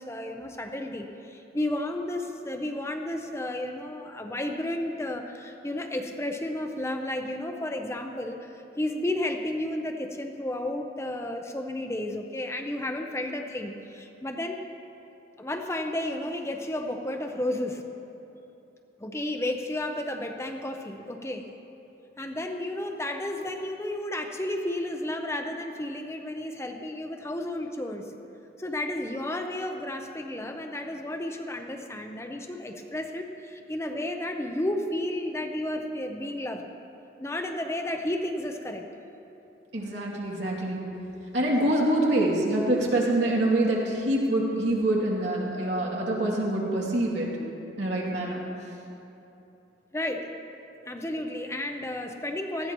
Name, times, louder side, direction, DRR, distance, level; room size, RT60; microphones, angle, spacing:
voice 1, 0.0-14.6 15.4-17.8 19.0-21.5 22.2-28.1 28.6-36.7 37.2-38.8 49.9-50.3 50.8-52.7, left 1 dB, 15° left, 4 dB, 0.7 m, -32 dB
voice 2, 39.7-40.8 41.3-47.3 47.8-48.4, right 1 dB, 85° right, -4 dB, 2.6 m, -25 dB
18.5 x 14.0 x 3.1 m, 3.0 s
head